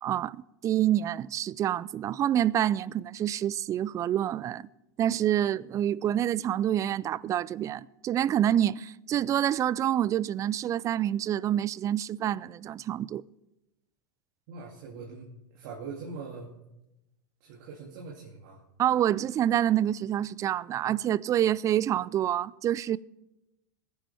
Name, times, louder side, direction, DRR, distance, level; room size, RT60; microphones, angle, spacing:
voice 1, 0.0-4.7 5.0-13.2 18.8-23.0, right 11 dB, 30° right, 0.4 m, -27 dB
voice 2, 14.5-15.3 15.5-16.5 17.4-18.6, right 4 dB, 60° right, 2.6 m, -42 dB
22.5 x 10.0 x 3.5 m
hypercardioid pair, 95°, 11 cm